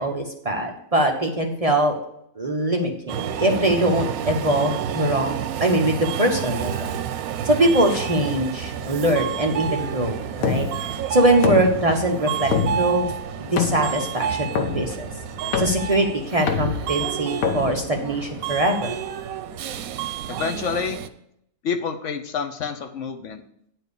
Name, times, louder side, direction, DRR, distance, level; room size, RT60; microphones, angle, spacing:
voice 1, 0.0-1.9 2.4-6.9 7.4-10.7 11.1-12.5 12.8-13.1 13.5-15.1 15.6-18.9, right 1 dB, 30° right, 1 dB, 0.9 m, -22 dB
Subway metro underground, 3.1-21.1, right 9 dB, 90° right, 1.1 m, -30 dB
sound 1, 7.9-18.6, left 5 dB, 90° left, 1.3 m, -29 dB
voice 2, 20.3-21.0 21.6-23.4, left 6 dB, 65° left, 6 dB, 1.0 m, -28 dB
9.7 x 4.5 x 6.7 m, 0.73 s
omnidirectional pair, 1.5 m